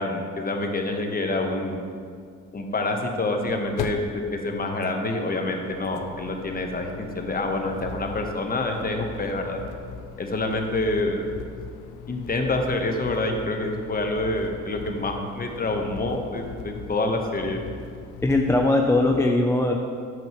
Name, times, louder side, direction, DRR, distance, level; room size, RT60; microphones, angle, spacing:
voice 1, 0.0-1.8 2.5-9.6 10.2-11.2 12.1-17.6, left 2 dB, 30° left, 3 dB, 1.1 m, -27 dB
sound 1, 0.6-0.7 0.9-1.0 2.9-19.2, left 7 dB, 80° left, 0.6 m, -40 dB
voice 2, 18.2-19.8, left 2 dB, 10° left, 2 dB, 0.4 m, -20 dB
9.0 x 7.2 x 3.0 m, 2.2 s
cardioid pair, 90°, 30 cm